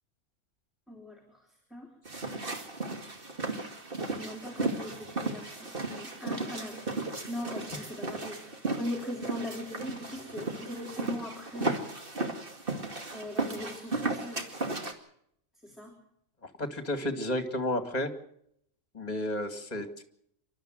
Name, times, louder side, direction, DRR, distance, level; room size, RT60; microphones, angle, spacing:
voice 1, 0.9-1.9 4.0-6.8 7.3-11.8 13.1-14.5 15.6-15.9, left 1 dB, ahead, 0 dB, 3.4 m, -40 dB
sound 1, 2.1-14.9, right 2 dB, 45° right, 2.5 m, -35 dB
voice 2, 16.6-18.1 18.9-20.0, left 1 dB, 30° left, 7 dB, 2.3 m, -32 dB
28.0 x 12.5 x 7.7 m, 0.71 s
omnidirectional pair, 1.3 m